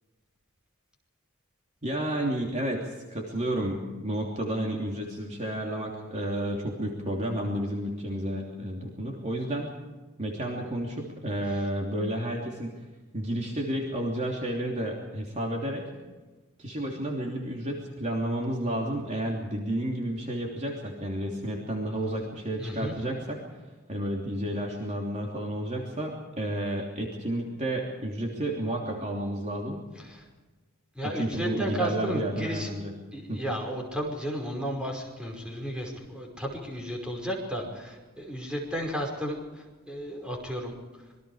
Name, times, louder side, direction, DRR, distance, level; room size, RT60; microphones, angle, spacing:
voice 1, 1.8-9.7 10.2-12.8 13.1-15.9 16.6-23.4 23.9-29.9 31.0-33.0 33.3-33.4, right 1 dB, 30° right, -1 dB, 3.2 m, -31 dB
voice 2, 22.6-22.9 30.0-30.2 31.0-32.7 33.1-40.7, equal, 5° right, 0 dB, 5.5 m, -33 dB
26.5 x 23.0 x 5.0 m, 1.2 s
head